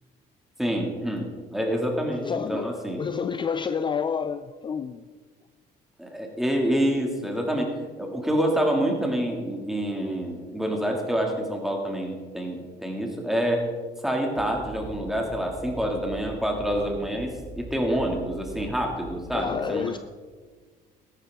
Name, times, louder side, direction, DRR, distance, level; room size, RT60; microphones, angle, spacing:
voice 1, 0.6-3.0 6.0-13.7 14.0-19.9, equal, ahead, 2.5 m, -27 dB
voice 2, 2.2-5.1 19.3-20.0, left 6 dB, 30° left, 0.4 m, -29 dB
sound 1, 14.3-19.3, right 2 dB, 50° right, 3.5 m, -42 dB
14.0 x 12.0 x 3.7 m
cardioid pair, 110°, 17 cm